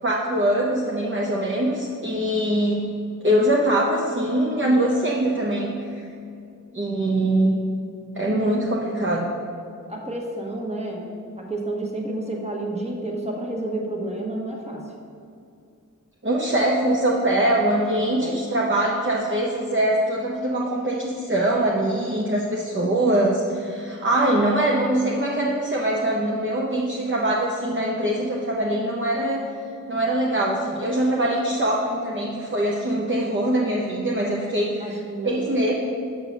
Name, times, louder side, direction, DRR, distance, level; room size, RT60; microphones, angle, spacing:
voice 1, 0.0-2.8 3.2-6.0 6.7-7.6 8.1-9.3 16.2-29.4 29.9-35.0 35.2-35.7, right 1 dB, 40° right, -3 dB, 0.8 m, -23 dB
voice 2, 9.9-11.0 11.4-14.8 18.2-18.4 34.8-35.4, right 2 dB, 20° right, 0 dB, 1.2 m, -30 dB
6.4 x 4.7 x 6.5 m, 2.5 s
wide cardioid pair, 65°, 32 cm